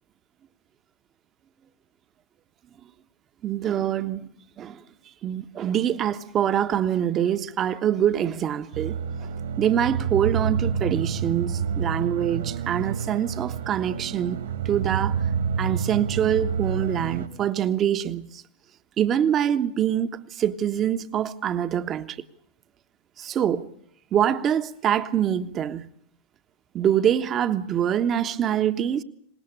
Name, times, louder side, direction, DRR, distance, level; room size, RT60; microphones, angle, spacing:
voice 1, 3.4-4.3 4.6-4.8 5.2-9.0 9.6-15.1 15.6-18.4 19.0-22.2 23.2-23.7 24.1-25.9 26.7-29.0, right 9 dB, 30° right, 1.2 m, -25 dB
sound 1, 8.7-17.3, right 6 dB, 65° right, 2.5 m, -28 dB
24.5 x 20.5 x 6.9 m
figure-of-eight pair, 90°, 0 cm